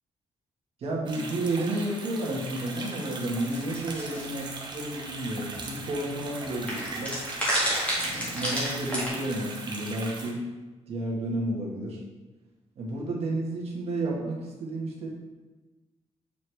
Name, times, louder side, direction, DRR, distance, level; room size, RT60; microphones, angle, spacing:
voice 1, 0.8-7.2 7.9-10.4 10.9-12.0 12.8-15.1, right 1 dB, 65° right, -3 dB, 1.4 m, -31 dB
sound 1, 1.1-10.3, right 3 dB, 40° right, 1.0 m, -40 dB
sound 2, 3.5-4.2 5.3-5.4 5.6-5.7 6.7-9.1, equal, 10° left, 1.8 m, -28 dB
7.0 x 4.7 x 3.3 m, 1.2 s
wide cardioid pair, 170°, 11 cm